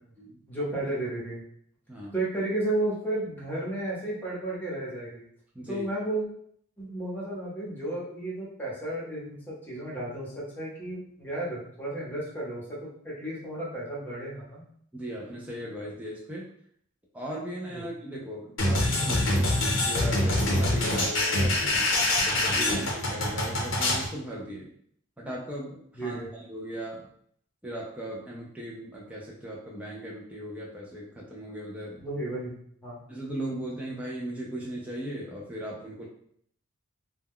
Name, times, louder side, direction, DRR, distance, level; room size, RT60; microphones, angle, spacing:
voice 1, 0.5-1.4 2.1-5.2 5.7-6.3 6.8-14.6 17.7-17.8 22.5-22.7 25.9-26.3 32.0-32.5 32.8-33.0, right 1 dB, 10° left, -6 dB, 0.8 m, -33 dB
voice 2, 5.5-5.9 14.9-16.5 17.1-21.9 22.4-24.7 25.2-27.1 27.6-32.0 33.1-36.0, right 1 dB, 5° right, -5 dB, 0.4 m, -38 dB
sound 1, 18.6-24.1, left 1 dB, 65° left, 0.7 m, -25 dB
2.2 x 2.1 x 3.5 m, 0.65 s
head